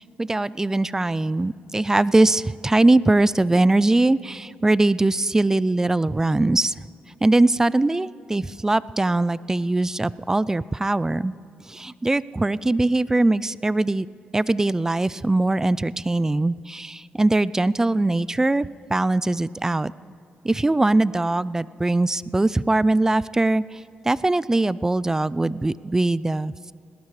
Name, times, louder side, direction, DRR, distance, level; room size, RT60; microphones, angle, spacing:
voice 1, 0.0-6.9 7.2-11.3 11.7-14.1 14.3-19.9 20.4-23.8 24.0-26.7, right 2 dB, 15° right, 19 dB, 0.3 m, -21 dB
20.0 x 18.0 x 3.2 m, 2.5 s
cardioid pair, 80°, 3 cm